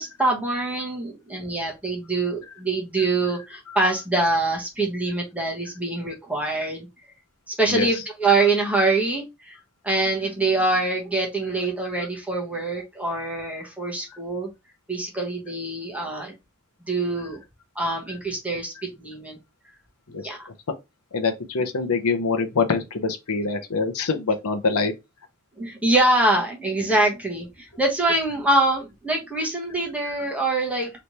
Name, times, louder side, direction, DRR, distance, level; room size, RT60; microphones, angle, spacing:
voice 1, 0.0-6.9 7.5-9.6 9.8-14.5 14.9-16.3 16.8-17.4 17.7-19.4 20.2-20.5 25.6-30.9, right 2 dB, 5° right, 1.3 m, -24 dB
voice 2, 7.7-8.0 14.1-14.2 20.1-20.2 21.1-24.9 30.1-30.2, left 4 dB, 80° left, 0.8 m, -25 dB
3.3 x 3.1 x 4.1 m
head